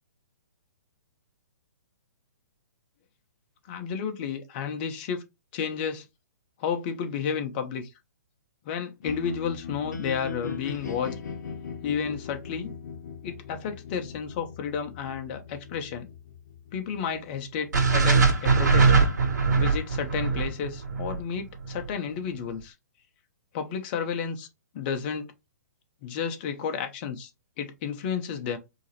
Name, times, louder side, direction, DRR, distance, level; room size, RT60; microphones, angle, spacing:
voice 1, 3.7-5.2 5.5-6.1 6.6-7.9 8.6-11.1 11.8-12.7 13.2-16.1 16.7-19.0 19.6-22.7 23.5-24.5 24.7-25.3 26.0-27.3 27.6-28.6, left 7 dB, 35° left, 1.0 m, -32 dB
sound 1, 9.0-19.1, left 6 dB, 75° left, 0.9 m, -40 dB
sound 2, 17.7-21.9, right 4 dB, 80° right, 1.3 m, -21 dB
4.6 x 3.0 x 3.1 m
hypercardioid pair, 145°, 9 cm